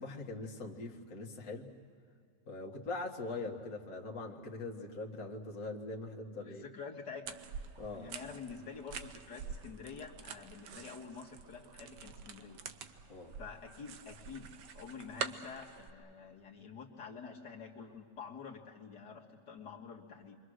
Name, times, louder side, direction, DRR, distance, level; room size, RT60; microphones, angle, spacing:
voice 1, 0.0-1.7 2.5-6.6 7.8-8.1 13.1-13.4, left 3 dB, 55° left, 0 dB, 2.2 m, -42 dB
voice 2, 6.5-7.4 7.9-12.6 13.4-20.4, left 5 dB, 80° left, -1 dB, 2.3 m, -48 dB
sound 1, 7.3-15.9, right 6 dB, 90° right, 1.6 m, -46 dB
29.5 x 24.0 x 6.4 m, 2.2 s
omnidirectional pair, 1.8 m